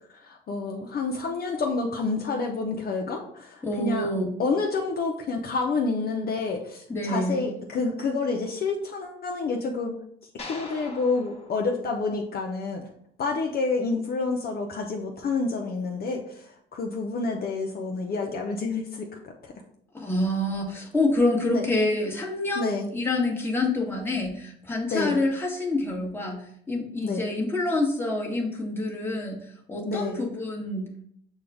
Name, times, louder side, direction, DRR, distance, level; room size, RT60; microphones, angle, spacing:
voice 1, 0.1-4.1 4.4-10.0 10.5-12.9 13.2-19.5 21.5-21.7 22.5-22.9 24.9-25.2 27.0-27.2 29.8-30.2, left 3 dB, 50° left, 1 dB, 0.6 m, -29 dB
voice 2, 3.6-4.3 6.9-7.4 19.9-29.4 29.7-30.9, left 2 dB, 10° left, -2 dB, 1.2 m, -27 dB
sound 1, 10.4-12.7, left 2 dB, 30° left, 1.0 m, -43 dB
6.4 x 2.3 x 3.4 m, 0.67 s
cardioid pair, 90°, 20 cm